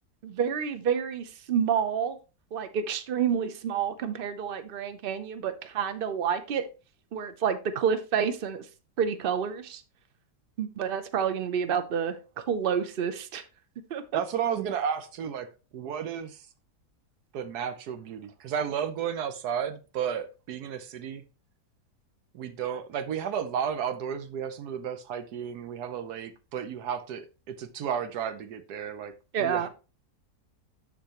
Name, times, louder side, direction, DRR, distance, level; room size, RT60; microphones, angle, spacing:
voice 1, 0.2-2.2 2.5-6.6 7.1-8.7 9.0-9.8 10.6-13.4 13.9-14.2 29.3-29.7, right 7 dB, 50° right, 0.6 m, -29 dB
voice 2, 14.1-15.5 15.7-16.4 17.3-21.2 22.3-29.1 29.4-29.7, right 8 dB, 70° right, 1.3 m, -33 dB
12.0 x 4.6 x 2.9 m
omnidirectional pair, 1.8 m